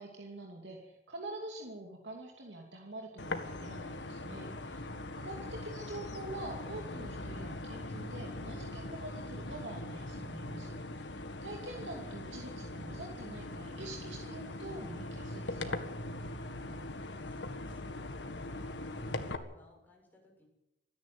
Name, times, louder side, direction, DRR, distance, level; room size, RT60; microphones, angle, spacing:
voice 1, 0.0-4.8 5.1-11.1 11.4-15.8, right 2 dB, 80° right, 0 dB, 2.8 m, -46 dB
Distant Traffic, 3.2-19.4, left 2 dB, 85° left, 1.9 m, -41 dB
voice 2, 17.2-20.5, left 1 dB, 10° left, -1 dB, 7.2 m, -61 dB
27.0 x 10.5 x 9.5 m, 0.94 s
head